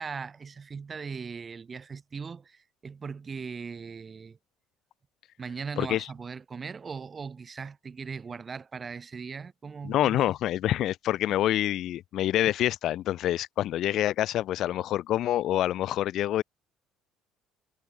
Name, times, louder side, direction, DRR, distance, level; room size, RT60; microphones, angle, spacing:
voice 1, 0.0-4.4 5.4-10.3, right 5 dB, 30° right, 2.7 m, -39 dB
voice 2, 5.8-6.1 9.8-16.4, left 13 dB, 65° left, 1.0 m, -26 dB
supercardioid pair, 90°, 0 cm